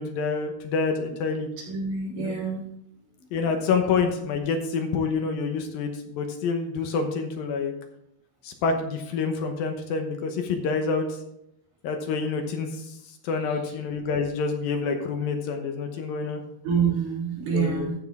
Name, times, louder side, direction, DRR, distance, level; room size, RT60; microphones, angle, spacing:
voice 1, 0.0-1.5 2.2-2.3 3.3-7.7 8.4-11.1 11.8-12.9 13.2-16.4 17.5-17.9, left 5 dB, 70° left, 4 dB, 2.6 m, -27 dB
voice 2, 1.7-2.6 16.6-18.0, right 6 dB, 75° right, -5 dB, 5.5 m, -26 dB
14.5 x 6.2 x 3.6 m, 0.79 s
omnidirectional pair, 4.6 m